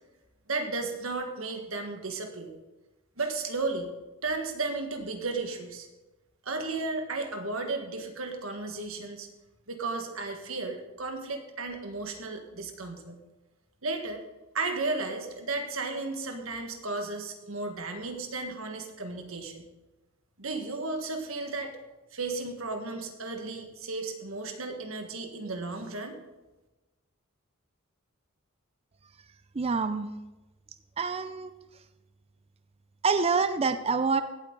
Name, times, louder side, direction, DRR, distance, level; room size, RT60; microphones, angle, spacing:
voice 1, 0.5-2.5 3.2-3.9 4.2-5.9 6.4-9.3 9.7-13.2 13.8-14.2 14.5-19.7 20.4-21.7 22.1-26.2, right 3 dB, 70° right, 5 dB, 1.7 m, -34 dB
voice 2, 29.5-30.1 31.0-31.5 33.0-34.2, right 4 dB, 30° right, 11 dB, 0.5 m, -26 dB
17.0 x 8.3 x 4.0 m, 1.1 s
head